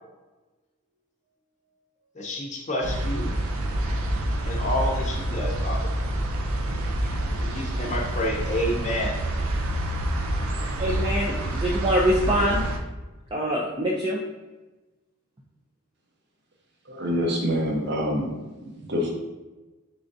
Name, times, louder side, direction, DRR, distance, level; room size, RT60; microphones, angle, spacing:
voice 1, 2.2-3.3 4.4-5.9 7.4-9.2, left 1 dB, 35° left, -1 dB, 0.6 m, -29 dB
sound 1, 2.8-12.8, right 1 dB, 90° right, 0.5 m, -27 dB
voice 2, 10.8-12.6 13.3-14.2, equal, 25° right, -4 dB, 0.3 m, -24 dB
voice 3, 16.9-18.3 18.6-19.1, equal, 55° right, 0 dB, 0.7 m, -26 dB
3.8 x 3.3 x 2.6 m, 1.1 s
head